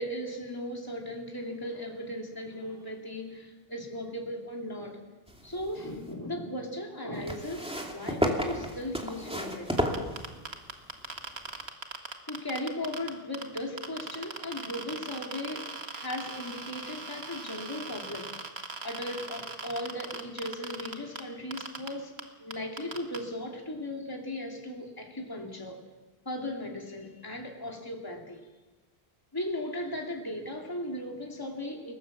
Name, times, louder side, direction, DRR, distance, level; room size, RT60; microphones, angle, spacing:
voice 1, 0.0-5.0 5.4-9.9 12.3-18.3 18.8-22.1 22.4-25.8 26.2-28.5 29.3-31.9, left 1 dB, 20° left, 1 dB, 2.8 m, -37 dB
sound 1, 5.3-6.1 7.2-10.7 11.6-11.7, equal, 5° right, 2.6 m, -32 dB
sound 2, 9.8-13.1 13.3-21.2 21.5-21.9 22.2-22.3 22.5-23.2, right 3 dB, 90° right, 2.1 m, -38 dB
29.5 x 19.0 x 7.4 m, 1.2 s
omnidirectional pair, 1.0 m